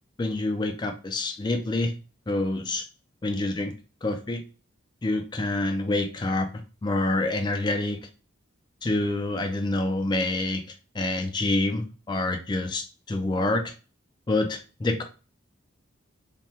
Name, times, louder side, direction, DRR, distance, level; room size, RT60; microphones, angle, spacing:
voice 1, 0.2-1.9 2.3-2.8 3.2-3.7 4.0-4.4 5.0-6.5 6.8-8.0 8.8-10.6 10.9-13.7 14.3-15.0, left 2 dB, 20° left, 6 dB, 0.3 m, -27 dB
3.4 x 2.1 x 2.8 m, 0.33 s
head